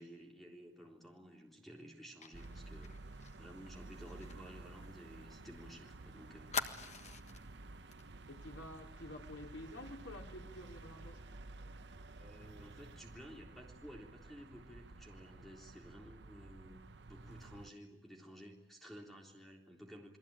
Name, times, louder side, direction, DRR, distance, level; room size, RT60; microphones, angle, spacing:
voice 1, 0.0-3.0 3.4-7.0 12.2-20.2, equal, ahead, 0 dB, 3.7 m, -54 dB
Fire, 2.2-5.7 5.9-6.0 6.5-7.5 7.9-8.1 8.4-8.6, left 5 dB, 35° left, 1.5 m, -45 dB
sound 1, 2.3-17.7, right 2 dB, 60° right, 0.9 m, -53 dB
voice 2, 8.3-11.2, left 1 dB, 85° left, 1 dB, 4.5 m, -50 dB
29.0 x 21.5 x 9.0 m, 0.95 s
head